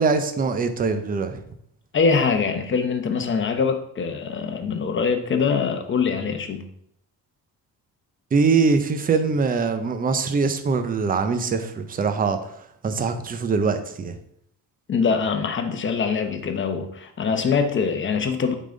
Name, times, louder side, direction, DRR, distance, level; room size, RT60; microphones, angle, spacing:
voice 1, 0.0-1.4 8.3-14.2, right 4 dB, 25° right, 8 dB, 0.5 m, -23 dB
voice 2, 1.9-6.6 14.9-18.5, left 5 dB, 30° left, 6 dB, 0.8 m, -23 dB
8.4 x 3.9 x 3.8 m, 0.70 s
cardioid pair, 150°, 37 cm